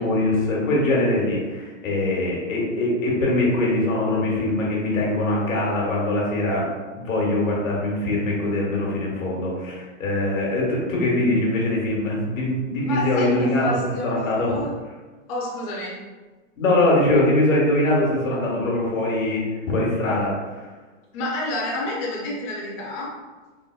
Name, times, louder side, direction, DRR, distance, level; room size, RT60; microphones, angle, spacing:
voice 1, 0.0-6.6 6.9-13.8 14.0-14.5 16.6-19.4 19.7-20.3 20.6-20.7, left 1 dB, 80° left, -3 dB, 1.2 m, -22 dB
voice 2, 12.8-14.8 15.3-16.0 21.1-23.2, left 1 dB, 25° left, -5 dB, 0.5 m, -29 dB
3.7 x 2.1 x 2.3 m, 1.3 s
hypercardioid pair, 145°, 39 cm